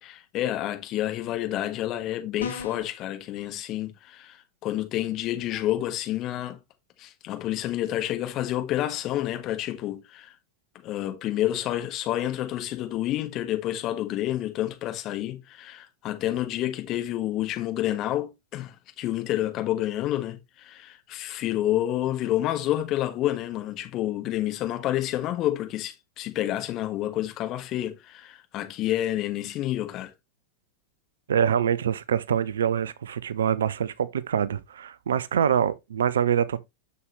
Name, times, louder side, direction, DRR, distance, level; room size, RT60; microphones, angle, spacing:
voice 1, 0.0-6.6 7.0-10.3 10.8-30.1, left 13 dB, 35° left, 1.5 m, -29 dB
sound 1, 2.4-3.0, left 4 dB, 70° left, 1.2 m, -35 dB
voice 2, 31.3-36.6, right 8 dB, 65° right, 0.5 m, -25 dB
7.0 x 6.5 x 3.1 m
figure-of-eight pair, 90°, 0 cm